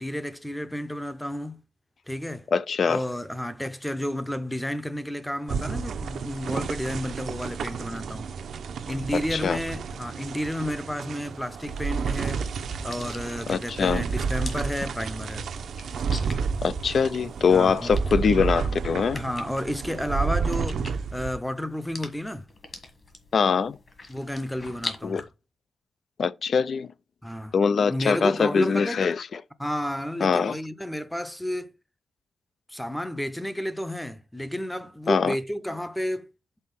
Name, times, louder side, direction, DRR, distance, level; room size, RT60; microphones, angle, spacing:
voice 1, 0.0-1.6 2.1-2.5 2.9-8.3 8.9-12.5 12.8-15.5 17.5-17.9 19.1-20.8 21.1-22.4 24.1-25.2 27.2-27.5 27.9-29.1 29.6-31.7 32.7-36.3, equal, 5° left, 0.7 m, -31 dB
voice 2, 2.5-3.0 9.3-9.6 13.5-14.0 16.6-19.2 23.3-23.8 25.0-25.2 26.2-26.9 27.5-29.4 30.2-30.6 35.1-35.4, left 6 dB, 55° left, 0.4 m, -23 dB
sound 1, 5.5-21.4, right 5 dB, 75° right, 0.7 m, -31 dB
sound 2, 11.3-25.2, left 3 dB, 35° left, 1.5 m, -44 dB
5.6 x 4.2 x 5.9 m
wide cardioid pair, 140°, 0 cm